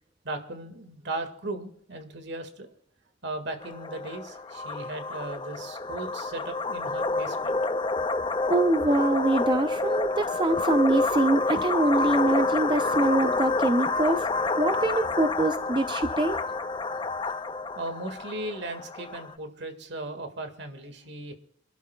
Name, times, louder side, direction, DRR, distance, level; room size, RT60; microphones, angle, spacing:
voice 1, 0.2-2.7 3.2-7.6 17.8-21.3, right 2 dB, 60° right, 7 dB, 1.7 m, -37 dB
sound 1, 3.6-19.3, left 3 dB, 25° left, 0.5 m, -28 dB
voice 2, 8.5-14.3 14.6-16.4, right 2 dB, 25° right, 8 dB, 0.5 m, -24 dB
27.0 x 12.5 x 2.2 m, 0.66 s
head